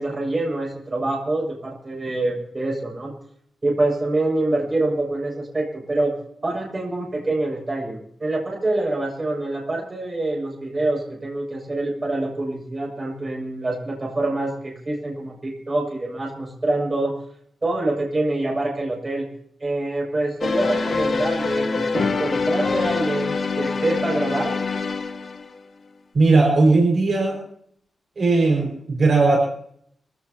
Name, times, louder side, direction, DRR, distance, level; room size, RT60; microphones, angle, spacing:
voice 1, 0.0-3.1 3.6-6.1 6.4-17.1 17.6-19.3 19.6-24.5, right 2 dB, 25° right, -2 dB, 6.8 m, -25 dB
sound 1, 20.4-25.6, left 4 dB, 45° left, 1.3 m, -24 dB
voice 2, 26.1-27.4 28.2-29.4, right 3 dB, 45° right, -1 dB, 5.6 m, -17 dB
25.5 x 16.5 x 3.0 m, 0.67 s
wide cardioid pair, 155°, 0 cm